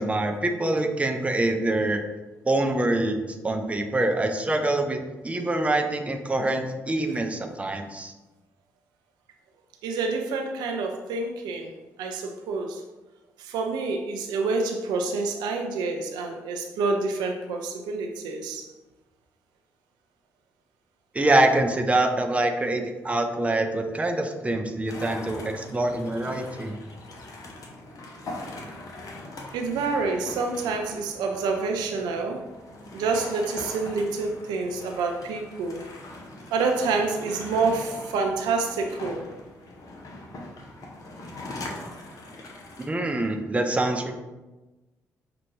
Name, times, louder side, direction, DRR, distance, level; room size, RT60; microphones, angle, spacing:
voice 1, 0.0-2.0 2.5-8.1 21.1-26.8 42.8-44.1, right 2 dB, 15° right, 5 dB, 0.5 m, -25 dB
voice 2, 9.8-11.7 12.0-12.8 13.4-18.7 29.5-32.4 32.9-35.8 36.5-39.2, right 4 dB, 65° right, 3 dB, 0.5 m, -27 dB
sound 1, 24.9-42.9, left 2 dB, 50° left, 0.8 m, -41 dB
5.7 x 2.5 x 3.1 m, 1.1 s
figure-of-eight pair, 40°, 8 cm